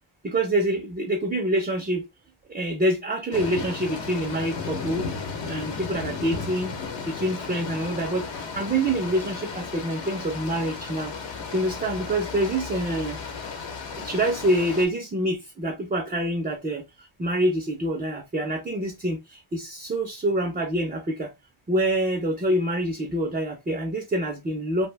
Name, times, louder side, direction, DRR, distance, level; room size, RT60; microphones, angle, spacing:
voice 1, 0.2-2.1 2.5-5.1 5.5-6.7 7.1-8.3 8.6-11.1 11.5-13.2 14.0-21.3 21.7-24.9, right 1 dB, 20° right, 0.3 m, -26 dB
sound 1, 3.3-14.8, left 5 dB, 65° left, 0.8 m, -34 dB
2.4 x 2.1 x 3.2 m
wide cardioid pair, 160°, 47 cm